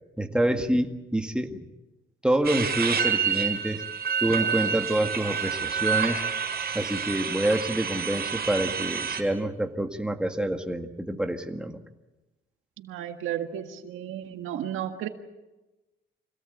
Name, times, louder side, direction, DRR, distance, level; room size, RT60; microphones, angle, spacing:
voice 1, 0.2-1.6 2.2-3.8 4.2-6.2 6.7-11.8, right 1 dB, 5° right, 5 dB, 2.0 m, -27 dB
sound 1, 2.4-9.2, right 7 dB, 50° right, 5.0 m, -28 dB
voice 2, 12.8-15.1, right 10 dB, 85° right, 7 dB, 1.8 m, -33 dB
25.0 x 18.0 x 8.3 m, 1.1 s
cardioid pair, 90°, 20 cm